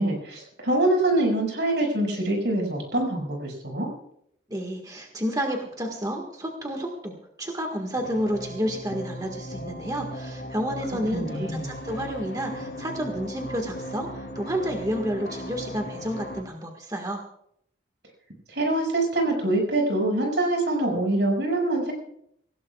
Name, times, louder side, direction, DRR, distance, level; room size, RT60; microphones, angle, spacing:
voice 1, 0.0-3.9 11.1-11.7 18.5-21.9, right 1 dB, 75° right, 1 dB, 6.0 m, -24 dB
voice 2, 4.5-17.2, equal, 20° right, 2 dB, 1.7 m, -30 dB
sound 1, 8.0-16.4, equal, 80° left, 2.9 m, -37 dB
27.0 x 16.5 x 2.4 m, 0.70 s
head